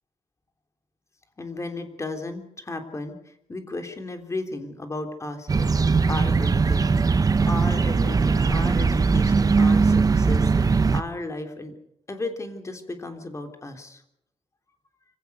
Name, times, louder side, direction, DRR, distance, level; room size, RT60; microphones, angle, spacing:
voice 1, 1.4-5.7 6.1-11.7 12.1-14.0, left 2 dB, 25° left, 5 dB, 3.4 m, -34 dB
sound 1, 5.5-11.0, right 4 dB, 30° right, 0.9 m, -20 dB
25.0 x 16.5 x 8.2 m, 0.77 s
cardioid pair, 130°, 13 cm